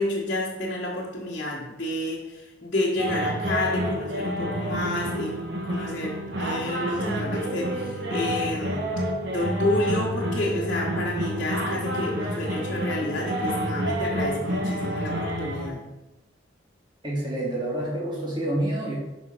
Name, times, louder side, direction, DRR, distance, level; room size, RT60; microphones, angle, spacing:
voice 1, 0.0-5.4 5.6-8.9 9.3-15.8, left 2 dB, 45° left, -7 dB, 1.7 m, -30 dB
sound 1, 3.0-15.7, equal, 65° right, 2.0 m, -29 dB
Bass guitar, 9.4-15.7, right 1 dB, ahead, 1.0 m, -37 dB
voice 2, 17.0-19.0, right 1 dB, 25° right, -5 dB, 3.2 m, -28 dB
11.0 x 5.6 x 5.2 m, 0.99 s
head